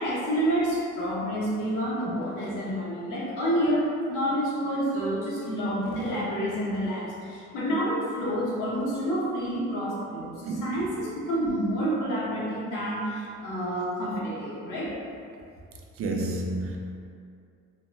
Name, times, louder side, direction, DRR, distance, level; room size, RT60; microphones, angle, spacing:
voice 1, 0.0-15.0, equal, 90° left, -6 dB, 0.8 m, -28 dB
voice 2, 16.0-16.8, right 2 dB, 50° right, 1 dB, 0.4 m, -29 dB
2.5 x 2.1 x 3.2 m, 2.4 s
cardioid pair, 90°, 30 cm